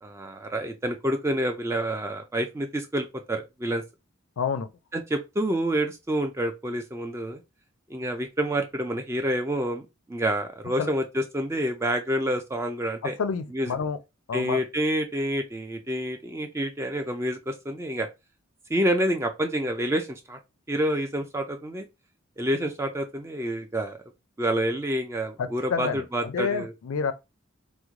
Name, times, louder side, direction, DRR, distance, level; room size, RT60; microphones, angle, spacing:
voice 1, 0.0-3.8 4.9-7.4 7.9-13.2 13.5-13.7 14.3-18.1 18.7-20.4 20.7-21.9 22.4-24.0 24.4-26.7, right 1 dB, 15° right, 0.3 m, -28 dB
voice 2, 4.4-4.7 10.8-10.9 13.2-14.0 14.3-14.6 25.4-27.1, left 6 dB, 80° left, 0.4 m, -29 dB
3.1 x 2.1 x 3.6 m
head